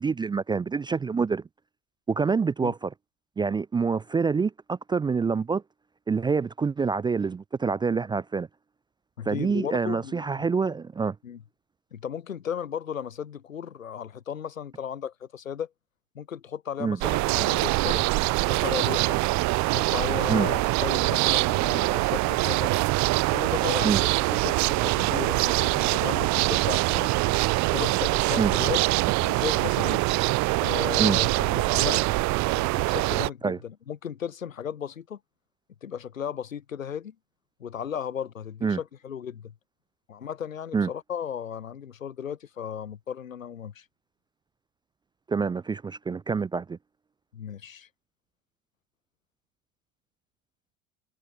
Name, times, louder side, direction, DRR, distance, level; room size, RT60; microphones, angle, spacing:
voice 1, 0.0-1.4 2.1-2.9 3.4-5.6 6.1-8.5 9.3-11.2 16.8-17.0 20.3-20.5 23.8-24.0 28.4-28.5 31.0-31.2 33.4-33.6 38.6-38.8 40.7-40.9 45.3-46.8, right 5 dB, 10° right, 0.5 m, -26 dB
voice 2, 9.2-10.2 11.2-11.4 11.9-15.7 16.1-18.1 18.5-19.2 19.7-22.7 23.3-27.1 27.7-30.0 30.5-32.1 32.5-35.2 35.8-37.1 37.6-39.5 40.1-43.8 47.3-47.9, left 8 dB, 85° left, 4.2 m, -35 dB
sound 1, 17.0-33.3, right 22 dB, 45° right, 1.3 m, -24 dB
hypercardioid pair, 90°, 39 cm